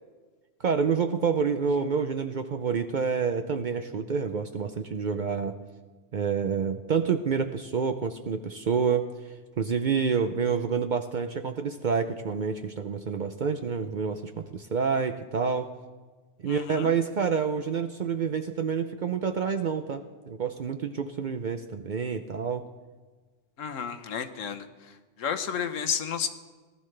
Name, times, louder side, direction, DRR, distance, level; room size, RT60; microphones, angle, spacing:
voice 1, 0.6-5.6 6.1-9.1 9.6-15.7 16.4-22.7, right 6 dB, 55° right, 8 dB, 0.5 m, -28 dB
voice 2, 16.4-16.9 23.6-24.7 25.2-26.3, left 7 dB, 90° left, 9 dB, 1.2 m, -31 dB
18.5 x 12.5 x 3.3 m, 1.4 s
omnidirectional pair, 1.3 m